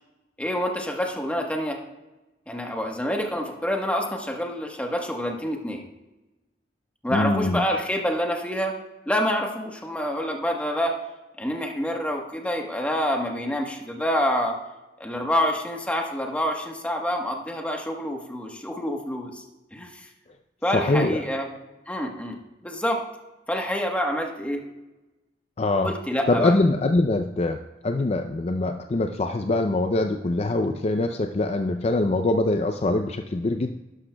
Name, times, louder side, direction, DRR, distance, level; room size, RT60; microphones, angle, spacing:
voice 1, 0.4-1.8 2.5-5.8 7.0-8.8 9.1-11.0 11.4-14.6 15.0-19.4 19.7-20.1 20.6-21.5 21.9-23.0 23.5-24.6 25.8-26.5, equal, 10° left, 2 dB, 1.2 m, -27 dB
voice 2, 7.1-7.6 20.7-21.2 25.6-25.9 26.3-33.7, left 2 dB, 35° left, 6 dB, 0.4 m, -23 dB
12.0 x 11.5 x 2.3 m, 1.1 s
head